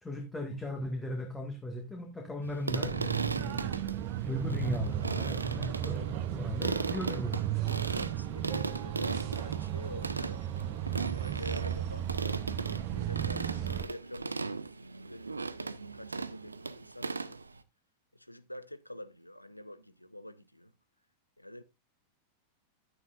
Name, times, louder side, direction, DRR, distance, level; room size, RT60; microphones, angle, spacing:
voice 1, 0.0-3.6 4.2-7.6, left 1 dB, 10° left, 1.7 m, -37 dB
sound 1, 2.4-17.6, right 3 dB, 80° right, 0.5 m, -37 dB
sound 2, 2.7-13.8, right 12 dB, 45° right, 0.8 m, -35 dB
voice 2, 8.1-12.1 12.9-17.4 18.1-20.7 21.4-21.6, left 1 dB, 85° left, 0.6 m, -47 dB
11.0 x 9.4 x 2.5 m
figure-of-eight pair, 90°, 0 cm